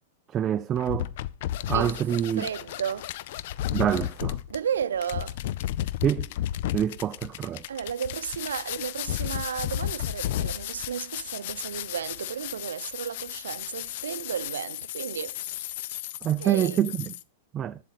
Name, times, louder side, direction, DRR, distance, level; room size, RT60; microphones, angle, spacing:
voice 1, 0.3-1.1 1.7-2.5 3.7-4.4 6.0-6.3 6.7-7.6 16.2-17.1 17.5-17.8, right 10 dB, 25° right, 0.3 m, -26 dB
sound 1, 0.8-17.2, left 13 dB, 55° left, 0.5 m, -33 dB
voice 2, 2.3-3.1 4.5-5.4 7.7-15.4 16.4-16.8, right 8 dB, 75° right, 0.6 m, -33 dB
7.6 x 7.5 x 4.1 m
hypercardioid pair, 105°, 0 cm